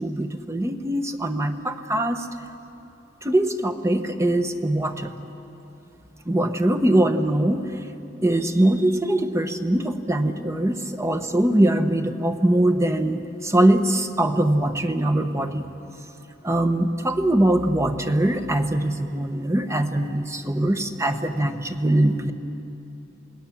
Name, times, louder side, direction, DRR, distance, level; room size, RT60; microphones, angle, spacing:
voice 1, 0.0-2.2 3.2-5.1 6.3-7.6 8.2-15.6 16.4-22.3, right 1 dB, 15° right, 7 dB, 1.0 m, -22 dB
28.0 x 18.5 x 7.2 m, 2.9 s
head